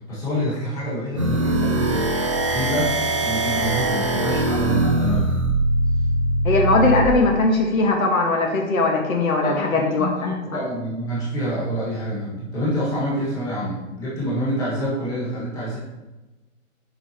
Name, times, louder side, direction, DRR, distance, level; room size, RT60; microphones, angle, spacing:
voice 1, 0.1-2.1 2.5-5.4 9.4-15.8, equal, 10° left, -9 dB, 1.8 m, -26 dB
sound 1, 1.2-7.1, right 1 dB, 25° right, 0.5 m, -22 dB
voice 2, 6.4-10.1, left 3 dB, 75° left, 1 dB, 1.8 m, -19 dB
7.8 x 5.7 x 3.0 m, 1.1 s
hypercardioid pair, 165°, 42 cm